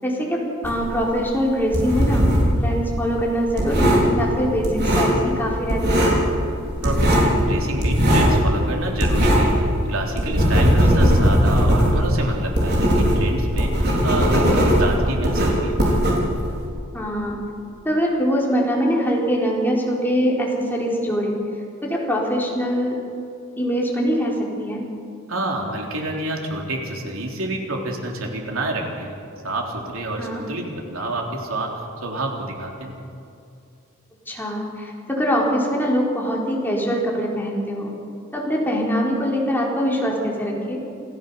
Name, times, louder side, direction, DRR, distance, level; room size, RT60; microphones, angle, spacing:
voice 1, 0.0-2.3 2.6-6.1 10.8-11.1 16.9-17.4 17.8-21.3 21.9-23.0 23.6-24.3 24.6-24.8 30.2-30.5 34.3-37.9 38.3-40.8, equal, 10° left, -2 dB, 4.0 m, -23 dB
sound 1, 0.6-2.6 2.9-5.4 5.7-6.3 6.5-9.6 9.9-16.6, equal, 50° right, 5.1 m, -18 dB
voice 2, 6.8-15.8 25.3-29.2 29.4-33.0, right 2 dB, 70° right, 1 dB, 3.6 m, -28 dB
27.5 x 15.0 x 7.0 m, 2.6 s
head